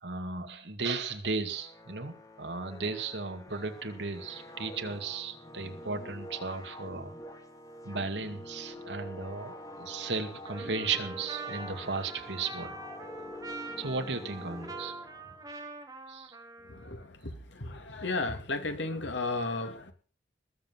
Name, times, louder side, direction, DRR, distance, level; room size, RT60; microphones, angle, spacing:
voice 1, 0.0-7.1 7.8-12.8 13.8-14.9 16.1-16.4, right 4 dB, 75° right, 7 dB, 2.3 m, -35 dB
sound 1, 1.5-15.6, equal, 20° left, 2.2 m, -46 dB
Trumpet, 10.5-17.1, right 3 dB, 20° right, 2.6 m, -44 dB
voice 2, 17.6-19.9, left 3 dB, 90° left, 7 dB, 2.6 m, -33 dB
20.0 x 7.8 x 7.4 m, 0.40 s
head